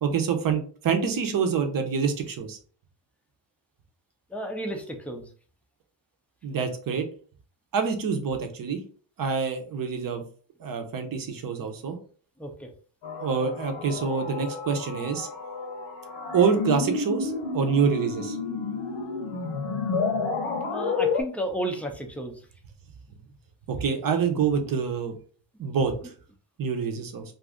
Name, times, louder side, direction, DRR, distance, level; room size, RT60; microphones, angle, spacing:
voice 1, 0.0-2.6 6.4-7.0 7.7-8.8 9.2-10.2 10.6-12.0 13.2-15.3 16.3-18.4 23.7-25.2 25.6-26.1 26.6-27.2, right 6 dB, 45° right, 5 dB, 0.8 m, -26 dB
voice 2, 4.3-5.2 12.4-12.7 20.7-22.3, right 1 dB, 5° left, 3 dB, 0.5 m, -32 dB
sound 1, 13.0-21.2, left 4 dB, 70° left, 0.9 m, -30 dB
2.7 x 2.5 x 3.5 m, 0.43 s
cardioid pair, 100°, 48 cm